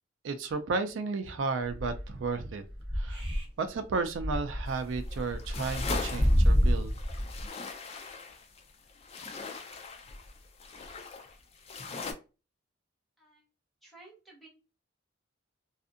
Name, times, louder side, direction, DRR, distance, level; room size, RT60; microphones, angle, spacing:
voice 1, 0.2-2.6 3.0-3.2 3.6-6.9, right 4 dB, 65° right, 9 dB, 0.4 m, -33 dB
sound 1, 1.6-2.2 2.7-3.4 3.7-3.8 4.1-7.4, equal, 25° right, 1.1 m, -28 dB
sound 2, 4.7-12.1, left 4 dB, 30° left, 0.4 m, -41 dB
voice 2, 13.8-14.5, right 2 dB, ahead, -3 dB, 1.0 m, -54 dB
2.6 x 2.4 x 2.4 m, 0.31 s
head